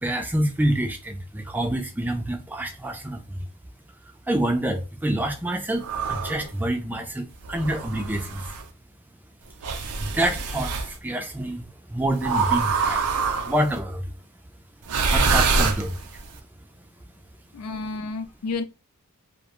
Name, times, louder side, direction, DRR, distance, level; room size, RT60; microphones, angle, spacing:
voice 1, 0.0-3.4 4.3-8.4 10.0-13.0 13.4-14.0 15.1-16.0, right 1 dB, 10° right, 0.4 m, -27 dB
sound 1, 5.8-6.5 7.4-8.6 9.6-10.9 12.2-13.7 14.8-16.3, right 4 dB, 75° right, 0.5 m, -25 dB
voice 2, 17.5-18.6, left 3 dB, 75° left, 0.4 m, -31 dB
2.4 x 2.1 x 2.9 m
head